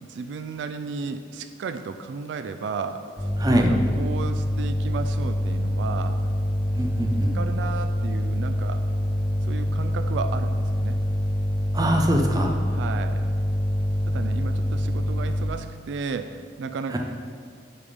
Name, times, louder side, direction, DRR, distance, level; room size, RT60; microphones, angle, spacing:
voice 1, 0.0-3.3 3.7-6.2 7.3-8.8 9.4-11.0 12.7-13.2 14.1-17.0, right 5 dB, 75° right, 9 dB, 0.3 m, -34 dB
sound 1, 3.2-15.5, equal, 30° left, 0.8 m, -25 dB
voice 2, 3.4-3.7 6.7-7.4 11.7-12.5 16.9-17.0, right 1 dB, 20° right, 1 dB, 0.6 m, -23 dB
8.6 x 3.5 x 5.0 m, 2.1 s
head